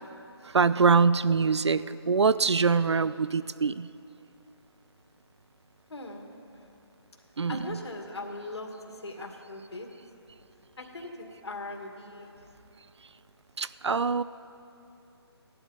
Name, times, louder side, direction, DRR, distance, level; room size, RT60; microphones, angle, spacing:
voice 1, 0.4-3.9 7.4-7.8 13.6-14.2, right 5 dB, 90° right, 16 dB, 0.4 m, -24 dB
voice 2, 5.9-6.3 7.5-8.7 9.0-9.9 10.8-12.3, left 2 dB, 75° left, 2 dB, 1.9 m, -39 dB
17.0 x 11.5 x 4.0 m, 2.8 s
figure-of-eight pair, 155°, 14 cm